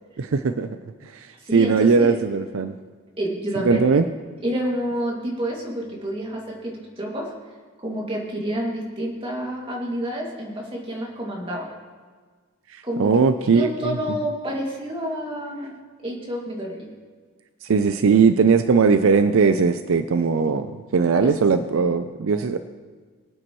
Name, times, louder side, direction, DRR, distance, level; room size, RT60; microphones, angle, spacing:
voice 1, 0.2-0.8 1.5-2.7 3.7-4.0 12.7-14.0 17.6-22.6, right 5 dB, 70° right, 10 dB, 0.5 m, -19 dB
voice 2, 1.4-2.2 3.2-3.8 4.4-7.3 7.8-11.7 12.8-13.1 13.4-16.9 21.2-21.4, equal, 25° right, -2 dB, 2.3 m, -29 dB
23.5 x 8.9 x 3.1 m, 1.5 s
head